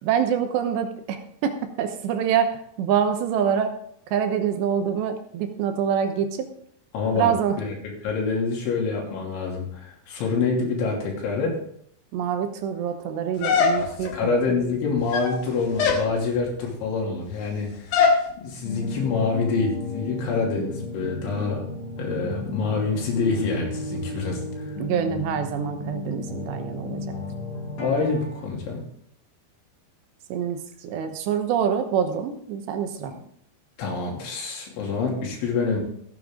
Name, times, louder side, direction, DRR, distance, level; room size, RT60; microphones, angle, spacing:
voice 1, 0.0-3.7 4.1-6.5 7.2-7.6 12.1-14.2 24.8-27.0 30.3-33.1, right 8 dB, 75° right, 6 dB, 3.1 m, -25 dB
voice 2, 6.9-7.3 7.6-7.7 8.0-11.6 13.8-18.0 18.4-21.6 22.0-24.7 27.8-28.8 33.1-33.2 33.8-35.8, left 4 dB, 85° left, -1 dB, 5.3 m, -26 dB
sound 1, 13.4-14.2 15.0-15.4 15.8-16.1 17.9-18.2, left 5 dB, 65° left, 3.0 m, -21 dB
sound 2, 18.6-28.4, left 2 dB, 40° left, 3.8 m, -34 dB
15.0 x 9.7 x 3.8 m, 0.68 s
omnidirectional pair, 5.2 m